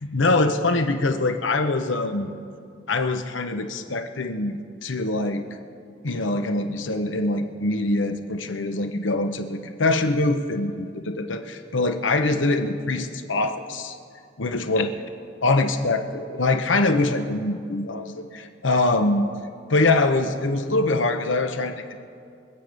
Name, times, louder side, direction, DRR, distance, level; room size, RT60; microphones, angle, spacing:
voice 1, 0.0-2.3 2.9-5.5 6.0-14.0 14.4-14.9 15.4-19.3 19.7-22.0, left 2 dB, 90° left, 7 dB, 1.0 m, -23 dB
24.0 x 8.8 x 5.4 m, 2.4 s
head